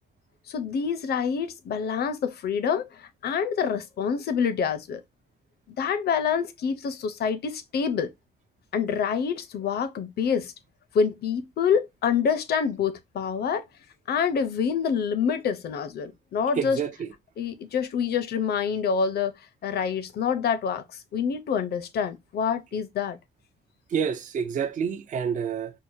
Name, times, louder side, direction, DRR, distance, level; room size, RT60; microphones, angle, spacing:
voice 1, 0.5-5.0 5.7-8.1 8.7-10.5 10.9-13.6 14.1-16.8 17.4-19.3 19.6-23.2, left 6 dB, 75° left, 0.6 m, -26 dB
voice 2, 16.6-17.1 23.9-25.7, right 7 dB, 50° right, 0.5 m, -28 dB
4.6 x 2.1 x 2.6 m
wide cardioid pair, 165°, 17 cm